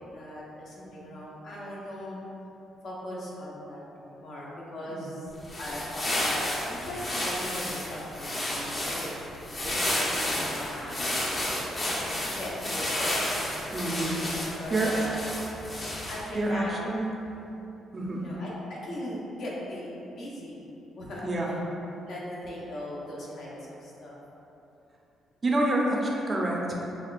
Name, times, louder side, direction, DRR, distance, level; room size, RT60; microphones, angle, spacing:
voice 1, 0.1-2.2 2.8-5.3 5.6-9.3 9.6-11.2 12.4-13.2 14.6-15.3 16.1-16.8 18.1-20.6 21.0-21.6 22.1-24.2, left 1 dB, 65° left, -6 dB, 0.9 m, -39 dB
sound 1, 5.3-16.4, left 1 dB, 35° left, 0.7 m, -31 dB
voice 2, 13.7-14.2 14.7-14.9 16.3-17.1 17.9-18.3 21.2-21.5 25.4-26.8, right 1 dB, 30° right, -2 dB, 0.5 m, -28 dB
5.9 x 2.3 x 2.4 m, 2.9 s
cardioid pair, 90°, 0 cm